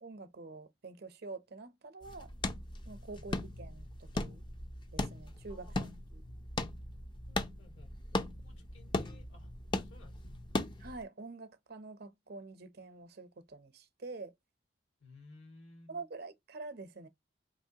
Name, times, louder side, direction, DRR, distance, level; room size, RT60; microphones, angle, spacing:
voice 1, 0.0-2.3 2.9-4.4 4.9-6.2 10.8-14.3 15.9-17.1, right 3 dB, 55° right, 0.7 m, -47 dB
sound 1, 2.0-11.0, left 2 dB, 25° left, 0.5 m, -38 dB
voice 2, 7.3-9.5 9.8-10.5 15.0-16.0, left 2 dB, 75° left, 2.0 m, -58 dB
5.2 x 3.0 x 2.8 m
head